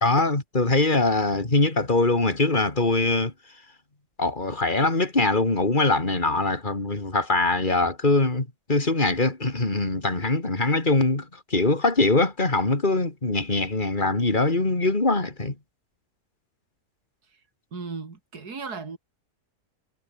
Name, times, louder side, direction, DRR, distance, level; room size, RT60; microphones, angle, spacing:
voice 1, 0.0-3.3 4.2-15.5, left 2 dB, 30° left, 3.6 m, -22 dB
voice 2, 17.7-19.0, right 4 dB, 75° right, 3.4 m, -36 dB
omnidirectional pair, 1.7 m